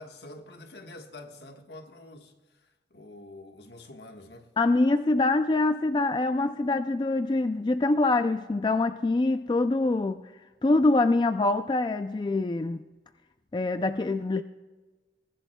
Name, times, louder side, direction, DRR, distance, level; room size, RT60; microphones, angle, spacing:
voice 1, 0.0-4.5, left 2 dB, 70° left, 1.4 m, -47 dB
voice 2, 4.6-10.2 10.6-12.8 13.5-14.4, left 2 dB, 25° left, 0.3 m, -24 dB
22.5 x 15.0 x 2.2 m
head